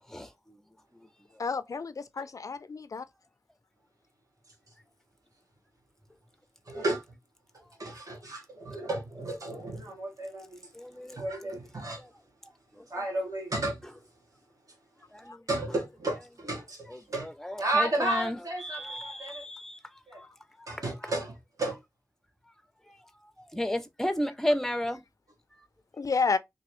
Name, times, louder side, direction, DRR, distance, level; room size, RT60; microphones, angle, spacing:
voice 1, 1.4-3.0 26.0-26.4, left 4 dB, 60° left, 0.4 m, -30 dB
voice 2, 6.7-7.0 7.8-10.6 11.1-12.0 12.9-13.8 15.5-17.3 17.6-19.4 20.1-20.2 20.7-21.8, right 2 dB, 65° right, 1.3 m, -33 dB
voice 3, 10.8-11.2 15.3-15.4 17.4-18.4 18.7-19.8 23.5-25.0, equal, 5° left, 0.5 m, -31 dB
3.0 x 2.6 x 3.0 m
wide cardioid pair, 85°, 6 cm